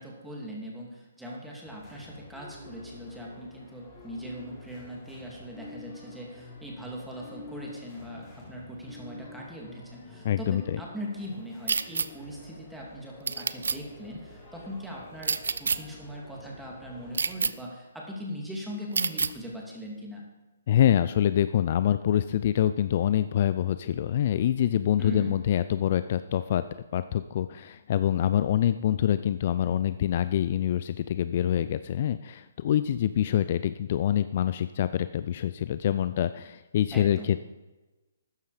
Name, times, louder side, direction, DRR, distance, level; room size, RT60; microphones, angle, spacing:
voice 1, 0.0-20.2 25.0-25.3 36.9-37.3, equal, 5° right, -3 dB, 2.8 m, -40 dB
sound 1, 1.6-17.4, left 2 dB, 15° left, 4.5 m, -49 dB
voice 2, 10.2-10.8 20.7-26.6 26.9-37.4, left 10 dB, 45° left, 13 dB, 0.4 m, -25 dB
sound 2, 11.7-12.1 13.3-13.8 15.2-15.8 17.1-17.5 18.9-19.3, right 5 dB, 75° right, 0.6 m, -27 dB
13.0 x 9.3 x 5.1 m, 1.1 s
hypercardioid pair, 140°, 0 cm